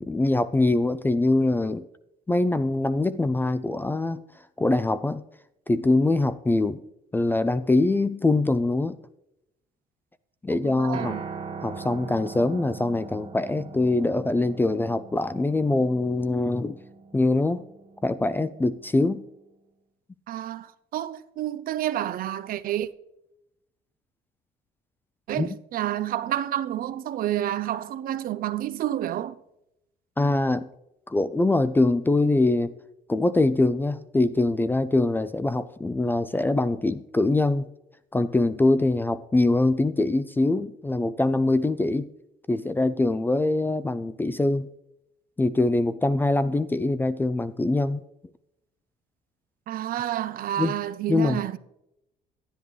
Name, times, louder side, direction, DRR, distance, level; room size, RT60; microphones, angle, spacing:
voice 1, 0.0-1.9 2.3-4.2 4.6-5.2 5.7-6.8 7.1-9.0 10.4-11.2 11.6-16.8 17.1-17.6 18.0-19.2 25.4-25.5 30.2-30.7 31.1-32.7 33.1-37.7 38.1-42.1 42.5-44.7 45.4-48.0 50.6-50.8 51.1-51.4, left 2 dB, 10° left, 0.3 m, -23 dB
voice 2, 10.6-11.3 20.3-22.9 25.3-29.4 49.7-51.6, right 12 dB, 60° right, 0.5 m, -29 dB
Piano, 10.9-19.2, right 5 dB, 35° right, 0.9 m, -41 dB
10.5 x 10.0 x 3.1 m
cardioid pair, 110°, 17 cm